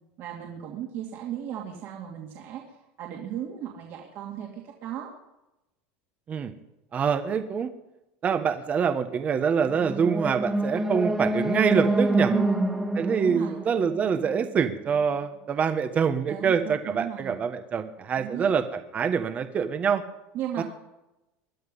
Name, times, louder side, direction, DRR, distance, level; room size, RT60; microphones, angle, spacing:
voice 1, 0.2-5.1 12.3-12.7 13.2-13.6 16.3-17.4 18.2-18.5 20.3-20.6, right 10 dB, 50° right, -1 dB, 2.5 m, -35 dB
voice 2, 6.9-7.7 8.2-12.3 13.0-20.0 20.6-20.7, right 6 dB, 25° right, 9 dB, 1.3 m, -25 dB
sound 1, 9.7-14.8, right 1 dB, 5° right, 1.8 m, -27 dB
21.0 x 12.0 x 5.4 m, 0.95 s
supercardioid pair, 145°, 5 cm